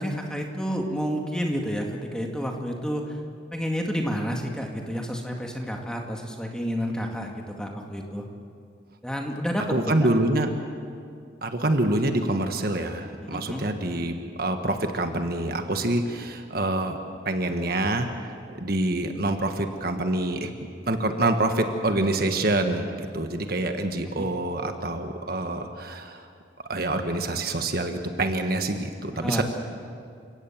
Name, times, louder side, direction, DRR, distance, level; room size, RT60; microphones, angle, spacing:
voice 1, 0.0-3.2 3.5-8.2 9.0-10.1 13.2-13.6 24.1-24.3 29.1-29.4, equal, 5° left, 1 dB, 2.1 m, -30 dB
voice 2, 9.7-10.5 11.4-17.0 17.2-18.1 18.5-20.5 20.9-26.3 26.7-29.4, right 2 dB, 50° right, 5 dB, 1.5 m, -26 dB
29.5 x 17.0 x 7.5 m, 2.3 s
head